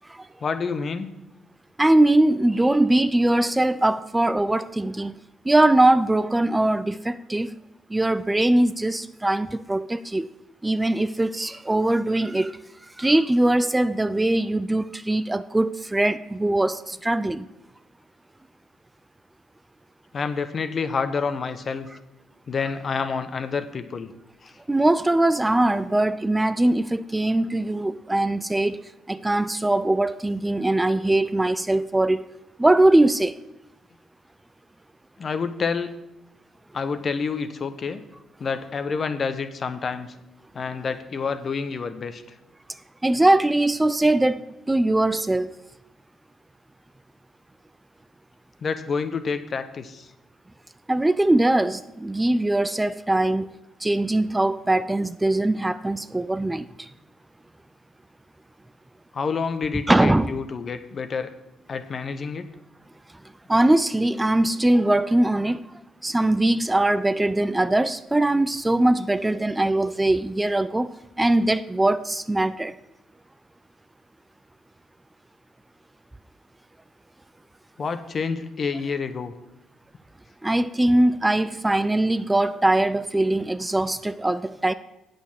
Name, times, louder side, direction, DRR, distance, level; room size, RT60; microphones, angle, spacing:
voice 1, 0.4-1.1 20.1-21.9 22.5-24.1 24.4-24.5 35.2-35.9 36.7-38.0 38.4-40.1 40.5-42.2 48.6-50.1 59.1-61.3 61.7-62.5 77.8-79.3, left 5 dB, 50° left, 0.9 m, -28 dB
voice 2, 1.8-5.1 5.4-7.5 7.9-10.3 10.6-12.6 13.0-17.5 24.7-32.2 32.6-33.4 43.0-45.5 50.9-56.9 59.9-60.4 63.5-65.6 66.0-70.9 71.2-72.8 80.4-84.7, right 1 dB, 15° right, 0.4 m, -21 dB
8.3 x 6.4 x 7.3 m
supercardioid pair, 60°, 0 cm